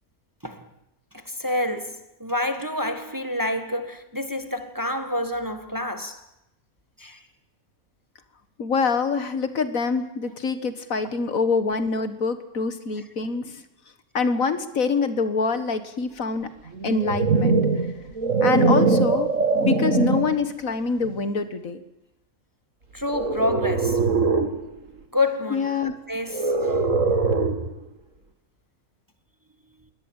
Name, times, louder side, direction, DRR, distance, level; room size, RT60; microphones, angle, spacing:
voice 1, 1.1-6.3 7.0-7.2 18.6-18.7 19.1-19.2 22.9-24.0 25.1-26.9, left 1 dB, 15° right, 1.5 m, -28 dB
voice 2, 8.6-13.6 14.1-16.5 16.8-17.6 18.4-21.8 25.5-26.0, left 4 dB, 70° left, 2.0 m, -25 dB
sound 1, 16.7-20.4 21.0-21.3 23.1-24.6 26.3-27.7, right 4 dB, 60° right, 2.4 m, -22 dB
22.5 x 18.0 x 9.0 m
omnidirectional pair, 1.5 m